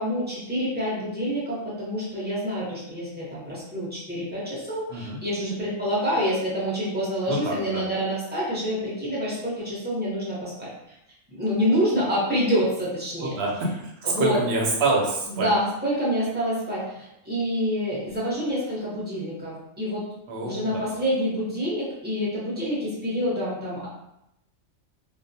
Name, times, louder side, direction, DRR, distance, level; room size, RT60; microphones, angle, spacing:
voice 1, 0.0-10.7 11.3-13.4 14.0-14.4 15.3-20.0 20.4-23.9, equal, 10° right, -8 dB, 0.5 m, -27 dB
voice 2, 7.3-7.8 13.2-13.7 14.0-15.5 20.3-20.9, right 2 dB, 60° right, -1 dB, 0.7 m, -26 dB
2.3 x 2.1 x 2.6 m, 0.83 s
omnidirectional pair, 1.5 m